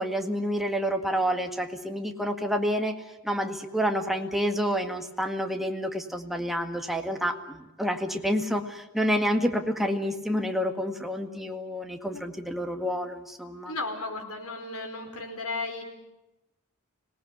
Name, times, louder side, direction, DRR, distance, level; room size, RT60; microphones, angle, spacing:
voice 1, 0.0-3.0 3.2-13.7, equal, ahead, 4 dB, 1.8 m, -28 dB
voice 2, 13.7-15.8, left 3 dB, 85° left, 3 dB, 5.0 m, -34 dB
25.5 x 18.5 x 9.5 m, 0.96 s
head